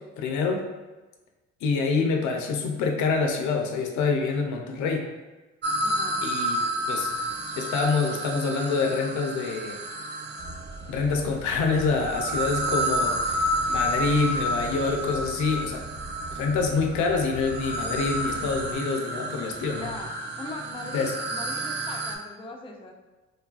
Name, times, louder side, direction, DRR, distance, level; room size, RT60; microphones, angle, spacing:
voice 1, 0.2-0.6 1.6-5.1 6.2-7.1 7.6-9.8 10.9-15.8 16.3-19.9 20.9-21.1, left 4 dB, 75° left, 2 dB, 0.5 m, -26 dB
sound 1, 5.6-10.8 11.7-22.2, right 1 dB, 35° right, 0.4 m, -30 dB
voice 2, 5.8-6.2 19.8-20.1 20.4-22.9, left 3 dB, 20° left, 1 dB, 0.4 m, -40 dB
sound 2, 10.4-18.8, right 1 dB, 65° right, 1.2 m, -41 dB
3.1 x 2.3 x 2.4 m, 1.2 s
supercardioid pair, 75°, 29 cm